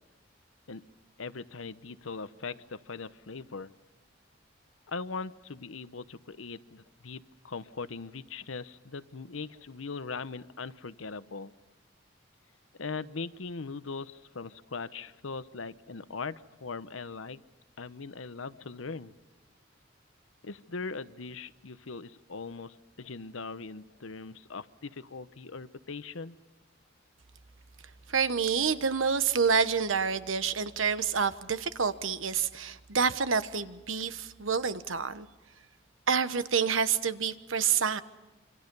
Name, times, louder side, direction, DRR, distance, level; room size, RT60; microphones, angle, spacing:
voice 1, 1.2-3.7 4.9-11.5 12.8-17.4 17.8-19.1 20.4-26.4, left 4 dB, 90° left, 14 dB, 0.9 m, -40 dB
voice 2, 28.1-35.3 36.1-38.0, right 6 dB, 85° right, 12 dB, 1.2 m, -28 dB
27.0 x 26.0 x 5.5 m, 1.2 s
head